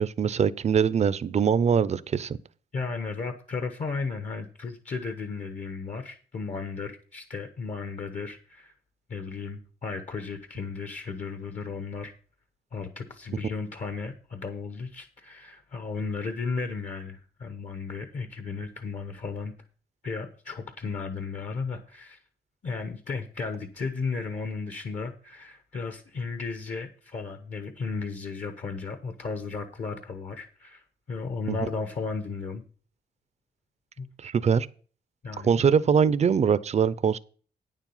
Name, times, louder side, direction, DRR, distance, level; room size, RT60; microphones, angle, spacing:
voice 1, 0.0-2.4 31.5-31.6 34.2-34.7 35.4-37.2, right 7 dB, 40° right, 0.5 m, -23 dB
voice 2, 2.7-8.7 9.1-12.1 12.7-19.5 20.0-22.2 22.6-30.8 31.1-32.6 34.0-34.1 35.2-35.6, left 4 dB, 45° left, 1.0 m, -34 dB
9.6 x 7.4 x 5.5 m
wide cardioid pair, 155°, 17 cm